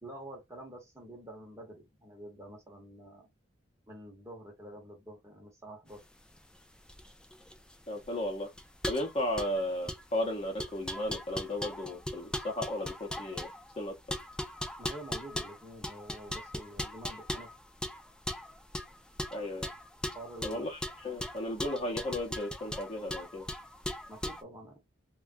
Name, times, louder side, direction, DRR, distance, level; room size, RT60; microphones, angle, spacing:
voice 1, 0.0-3.3 3.9-6.0 14.8-17.5 20.1-20.6 24.1-24.8, right 1 dB, 15° right, 1.0 m, -47 dB
sound 1, 6.0-24.4, left 1 dB, 5° left, 0.3 m, -39 dB
voice 2, 7.9-8.5 8.9-13.5 13.8-13.9 19.3-19.7 20.4-23.5, left 1 dB, 30° left, 0.8 m, -35 dB
3.4 x 2.3 x 2.5 m
head